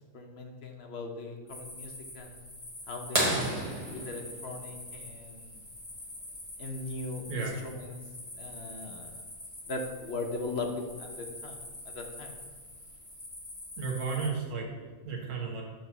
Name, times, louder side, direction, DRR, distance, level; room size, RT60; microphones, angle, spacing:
voice 1, 0.1-2.4 2.9-5.6 6.6-7.9 8.4-9.1 9.7-10.7 11.0-12.3, left 3 dB, 55° left, 2 dB, 0.9 m, -39 dB
sound 1, 1.5-14.3, left 1 dB, 30° left, 1.7 m, -46 dB
sound 2, 3.1-5.6 7.5-7.6 9.9-10.0 11.7-11.9 12.7-12.8, right 1 dB, 30° right, 0.9 m, -31 dB
voice 2, 13.8-15.6, right 5 dB, 70° right, -1 dB, 1.4 m, -34 dB
5.9 x 3.1 x 5.7 m, 1.4 s
omnidirectional pair, 1.4 m